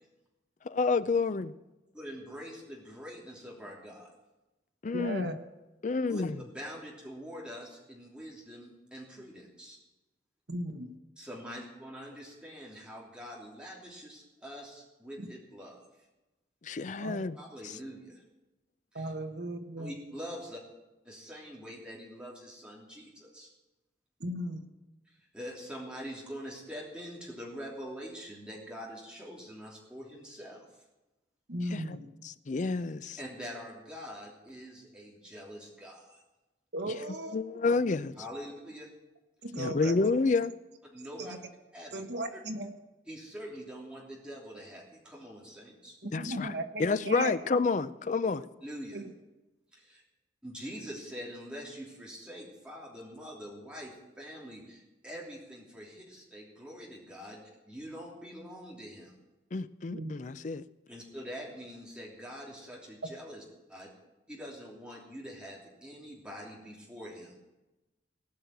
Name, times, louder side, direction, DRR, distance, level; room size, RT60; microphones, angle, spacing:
voice 1, 0.6-1.5 4.8-5.3 5.8-6.3 16.6-17.4 31.7-31.8 32.2-33.2 37.3-38.2 39.6-40.5 46.1-46.5 46.8-48.5 59.5-60.6, left 4 dB, 40° left, 0.4 m, -29 dB
voice 2, 1.9-4.1 6.1-9.8 11.2-15.8 17.4-18.2 18.9-19.1 19.8-20.6 21.0-23.5 25.1-30.6 33.2-36.2 38.2-38.9 40.9-41.3 41.7-42.1 42.3-42.4 43.1-46.0 48.6-49.0 49.7-50.0 50.4-57.4 57.6-59.1 60.9-63.4 63.7-63.9 64.3-67.4, equal, 5° right, 3.2 m, -44 dB
voice 3, 4.9-5.4 10.5-10.9 15.2-15.3 17.0-17.2 18.9-19.9 24.2-24.6 31.5-32.1 36.7-37.4 39.4-40.0 41.2-41.4 41.9-42.7 46.0-47.3 48.9-49.1 59.9-60.1, right 1 dB, 65° right, 1.3 m, -36 dB
18.0 x 6.3 x 8.2 m
head